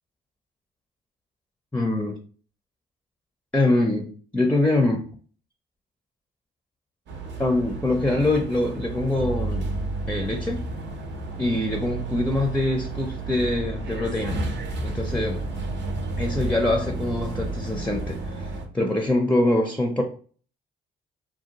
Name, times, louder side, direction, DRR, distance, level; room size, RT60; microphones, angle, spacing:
voice 1, 1.7-2.2 3.5-5.1 7.4-9.7 10.1-10.7 11.4-14.4 14.8-15.5 16.2-20.0, left 2 dB, 5° left, 0.5 m, -24 dB
sound 1, 7.1-18.7, right 2 dB, 65° right, 0.6 m, -31 dB
2.6 x 2.2 x 2.8 m
supercardioid pair, 55°, 20 cm